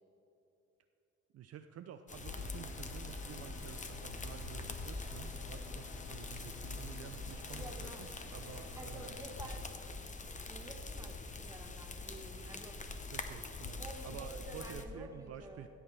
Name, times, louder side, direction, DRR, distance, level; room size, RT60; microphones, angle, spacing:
voice 1, 1.3-9.1 13.1-15.7, right 9 dB, 55° right, 8 dB, 0.4 m, -50 dB
sound 1, 2.1-14.9, left 3 dB, 25° left, 0.8 m, -44 dB
sound 2, 2.3-9.6, left 3 dB, 45° left, 1.6 m, -54 dB
voice 2, 7.5-8.2 8.8-9.7 10.5-12.9 13.8-15.6, right 1 dB, 10° right, 2 dB, 1.2 m, -50 dB
16.0 x 7.1 x 3.3 m, 2.9 s
cardioid pair, 90°, 30 cm